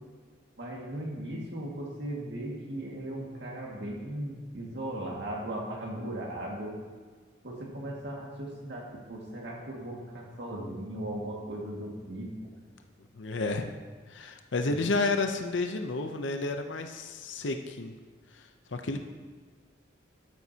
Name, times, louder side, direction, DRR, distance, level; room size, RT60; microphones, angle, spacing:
voice 1, 0.6-6.8 7.4-12.3, right 1 dB, 65° right, -3 dB, 2.0 m, -37 dB
voice 2, 13.2-13.7 14.1-17.9 18.7-19.0, left 3 dB, 80° left, 6 dB, 0.7 m, -31 dB
12.5 x 9.0 x 2.9 m, 1.5 s
head